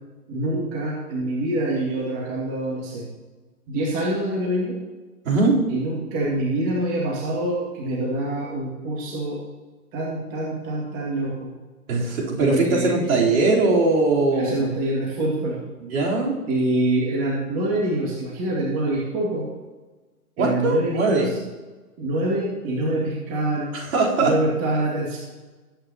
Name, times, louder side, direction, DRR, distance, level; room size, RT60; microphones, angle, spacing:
voice 1, 0.3-3.1 3.7-4.8 5.7-9.4 9.9-11.5 12.4-13.2 14.3-15.6 16.5-19.5 20.4-21.3 22.0-23.7 24.2-25.2, right 1 dB, 30° right, -3 dB, 2.3 m, -25 dB
voice 2, 5.2-5.6 11.9-14.7 15.8-16.4 20.4-21.3 23.7-24.3, right 3 dB, 60° right, -3 dB, 4.0 m, -20 dB
20.0 x 9.0 x 3.0 m, 1.3 s
hypercardioid pair, 135°, 45 cm